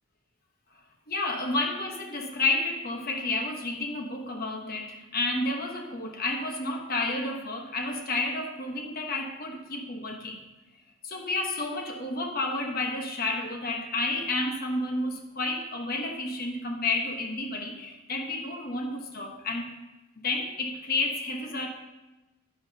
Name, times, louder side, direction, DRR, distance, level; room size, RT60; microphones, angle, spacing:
voice 1, 1.1-10.4 11.0-19.7 20.2-21.7, left 2 dB, 40° left, 3 dB, 1.0 m, -31 dB
11.0 x 9.5 x 2.8 m, 1.1 s
head